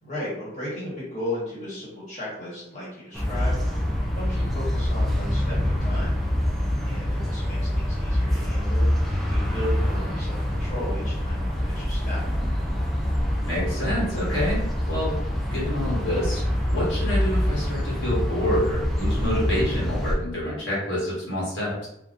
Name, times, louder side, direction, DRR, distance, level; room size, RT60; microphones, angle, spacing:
voice 1, 0.0-6.1 6.8-12.2, left 1 dB, 35° left, -7 dB, 1.1 m, -35 dB
sound 1, 3.1-20.1, left 1 dB, ahead, 0.4 m, -25 dB
voice 2, 13.4-15.2 15.5-16.4 16.7-21.9, left 1 dB, 60° left, -6 dB, 1.1 m, -27 dB
3.5 x 2.3 x 2.5 m, 0.80 s
head